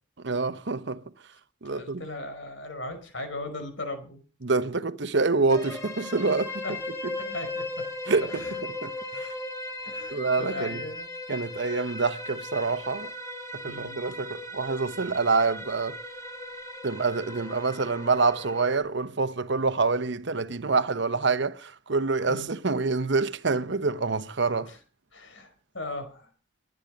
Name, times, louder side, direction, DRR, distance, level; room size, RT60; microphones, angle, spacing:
voice 1, 0.2-1.0 1.6-2.0 4.4-6.6 8.1-8.4 8.8-9.3 10.1-10.8 11.3-13.1 13.6-16.0 16.8-24.7, right 4 dB, 65° right, 1.0 m, -26 dB
voice 2, 1.7-4.2 6.6-6.7 7.2-7.8 8.2-8.6 8.9-9.0 9.8-11.1 13.6-14.0 22.3-22.5 24.7-24.8 25.1-26.3, left 2 dB, 75° left, 5.4 m, -38 dB
sound 1, 5.5-18.8, left 2 dB, 15° left, 4.2 m, -37 dB
23.5 x 9.1 x 5.3 m
head